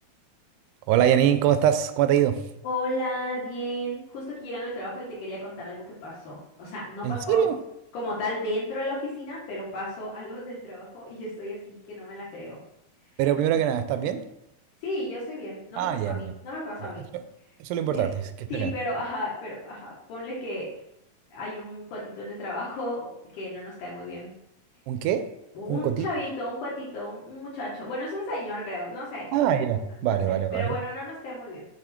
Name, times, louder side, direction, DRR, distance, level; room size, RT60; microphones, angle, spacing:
voice 1, 0.9-2.4 7.0-7.6 13.2-14.2 15.8-16.3 17.6-18.1 18.5-18.7 24.9-25.3 25.7-26.1 29.3-30.7, right 10 dB, 85° right, 10 dB, 2.1 m, -23 dB
voice 2, 2.6-7.4 7.9-12.6 13.1-13.2 14.8-17.0 17.9-18.0 18.5-20.7 21.3-24.3 25.5-29.4 30.0-31.7, left 1 dB, 75° left, -6 dB, 3.0 m, -34 dB
8.5 x 2.9 x 4.4 m, 0.82 s
omnidirectional pair, 3.6 m